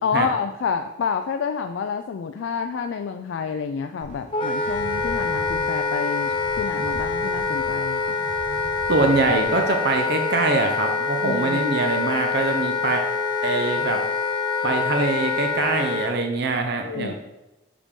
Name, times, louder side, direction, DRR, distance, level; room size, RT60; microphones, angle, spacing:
voice 1, 0.0-6.3 6.6-8.2 11.2-11.7 16.8-17.1, left 6 dB, 65° left, 6 dB, 0.3 m, -28 dB
sound 1, 4.0-9.8, right 1 dB, 40° right, 1.1 m, -40 dB
Wind instrument woodwind instrument, 4.3-16.1, left 4 dB, 25° left, 0.7 m, -25 dB
voice 2, 8.9-13.0 13.4-14.0 14.6-17.1, right 3 dB, 55° right, 4 dB, 0.6 m, -23 dB
6.6 x 5.1 x 3.6 m, 1.0 s
head